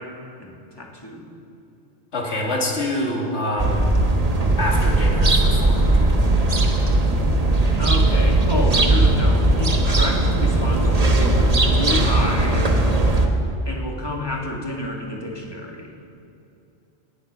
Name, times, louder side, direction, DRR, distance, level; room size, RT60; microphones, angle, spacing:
voice 1, 0.0-1.4 7.8-12.7 13.6-15.9, left 1 dB, 20° left, -1 dB, 1.7 m, -30 dB
voice 2, 2.1-4.0 4.6-6.1, left 1 dB, 80° left, -1 dB, 2.2 m, -26 dB
sound 1, 3.6-13.3, right 2 dB, 35° right, 1.1 m, -18 dB
18.0 x 8.1 x 6.1 m, 2.7 s
omnidirectional pair, 1.2 m